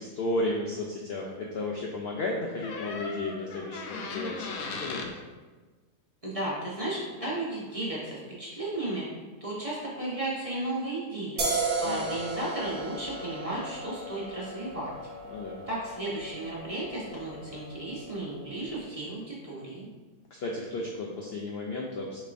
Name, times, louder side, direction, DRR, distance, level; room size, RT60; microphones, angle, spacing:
voice 1, 0.0-5.1 11.8-12.0 15.3-15.6 20.3-22.2, left 2 dB, 65° left, -1 dB, 0.6 m, -33 dB
sound 1, 2.6-5.1 7.2-7.4, left 3 dB, 80° left, 1.0 m, -37 dB
voice 2, 6.2-9.0 9.4-11.4 11.8-14.9 15.7-19.9, right 1 dB, 30° right, -6 dB, 0.9 m, -34 dB
sound 2, 11.4-18.7, right 2 dB, 60° right, 1.1 m, -35 dB
6.5 x 3.1 x 2.5 m, 1.3 s
omnidirectional pair, 1.5 m